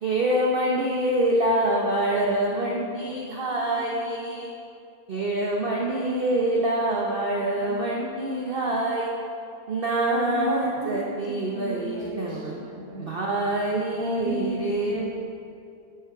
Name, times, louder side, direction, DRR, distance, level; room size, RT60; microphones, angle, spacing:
voice 1, 0.0-4.5 5.1-9.1 9.7-12.5 13.0-15.0, right 1 dB, 40° right, -3 dB, 1.1 m, -25 dB
voice 2, 2.5-3.2 3.5-4.0 7.6-7.8 10.2-10.9 11.3-13.1 13.9-15.0, equal, 20° right, -4 dB, 1.6 m, -35 dB
11.0 x 9.5 x 4.8 m, 2.5 s
omnidirectional pair, 1.7 m